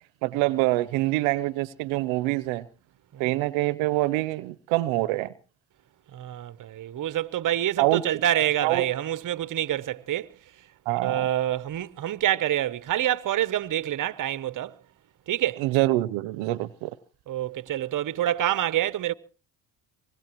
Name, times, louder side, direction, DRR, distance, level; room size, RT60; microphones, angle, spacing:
voice 1, 0.2-2.6 3.2-5.3 7.8-8.0 8.6-8.8 10.9-11.3 15.6-16.9, right 18 dB, 85° right, 0.7 m, -25 dB
voice 2, 6.1-10.3 11.0-14.8 15.3-15.6 17.3-19.1, right 12 dB, 45° right, 0.8 m, -27 dB
23.5 x 20.0 x 3.0 m
supercardioid pair, 70°, 46 cm